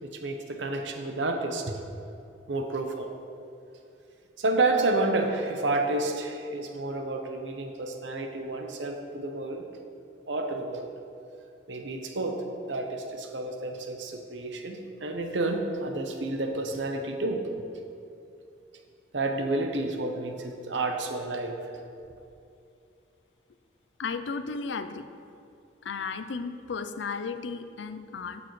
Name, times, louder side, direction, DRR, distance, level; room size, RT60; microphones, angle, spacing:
voice 1, 0.0-1.8 2.5-3.1 4.4-9.6 10.3-10.9 11.7-12.4 12.7-17.4 19.1-21.5, right 2 dB, 90° right, 4 dB, 0.9 m, -30 dB
voice 2, 24.0-25.0 25.8-28.4, left 5 dB, 85° left, 10 dB, 0.5 m, -34 dB
11.5 x 6.9 x 3.2 m, 2.6 s
head